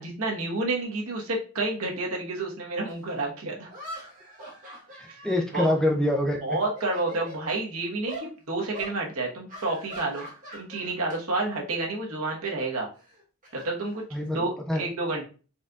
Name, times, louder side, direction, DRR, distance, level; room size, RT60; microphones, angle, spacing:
voice 1, 0.0-3.7 5.5-5.7 6.4-10.2 10.5-12.9 13.5-15.2, right 2 dB, 75° right, -1 dB, 1.1 m, -30 dB
sound 1, 2.9-3.0 3.7-6.3 6.7-7.6 8.1-8.3 8.7-9.0 9.5-11.2 11.5-11.8 13.0-14.4, equal, 35° right, 1.3 m, -43 dB
voice 2, 5.0-6.6 14.1-14.8, left 1 dB, 5° left, 1 dB, 0.4 m, -26 dB
4.2 x 3.8 x 2.3 m, 0.37 s
head